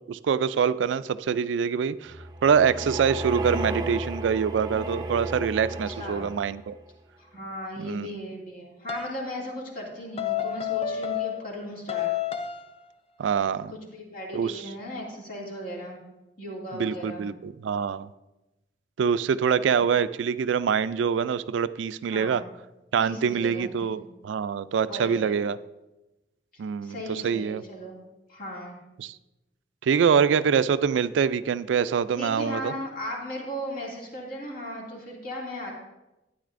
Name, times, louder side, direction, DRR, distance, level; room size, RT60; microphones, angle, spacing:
voice 1, 0.1-2.2 2.4-6.8 7.8-8.1 13.2-13.7 14.3-14.6 16.7-18.1 19.0-22.4 22.9-25.6 26.6-27.6 29.0-29.2 29.8-32.7, right 7 dB, 85° right, 15 dB, 0.3 m, -25 dB
sound 1, 2.1-6.7, right 1 dB, 20° right, 0.5 m, -34 dB
voice 2, 5.7-6.3 7.2-12.1 13.9-16.0 16.4-17.3 22.1-22.5 23.0-24.1 24.9-25.4 26.5-28.0 28.3-28.8 32.2-35.7, equal, 50° left, -2 dB, 2.3 m, -37 dB
sound 2, 8.9-9.2 10.2-11.6 11.9-12.8, left 10 dB, 35° left, 0.4 m, -29 dB
12.0 x 9.3 x 2.5 m, 1.0 s
head